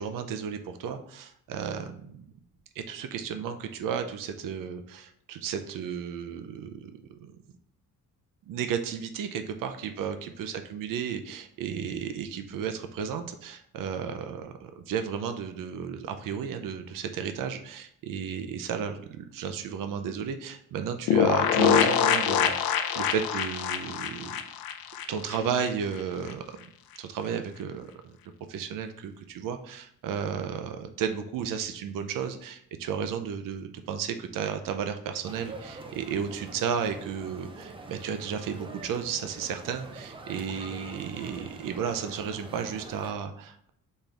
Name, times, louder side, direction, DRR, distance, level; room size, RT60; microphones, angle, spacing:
voice 1, 0.0-2.2 2.8-7.3 8.5-24.4 25.1-26.4 27.0-28.2 28.5-43.7, right 7 dB, 65° right, 7 dB, 0.6 m, -33 dB
sound 1, 21.1-25.7 26.0-26.1 26.3-26.4, left 8 dB, 85° left, 0.5 m, -25 dB
sound 2, 35.2-43.1, right 3 dB, 15° right, 0.3 m, -44 dB
4.3 x 3.4 x 3.7 m, 0.67 s
cardioid pair, 155°, 35 cm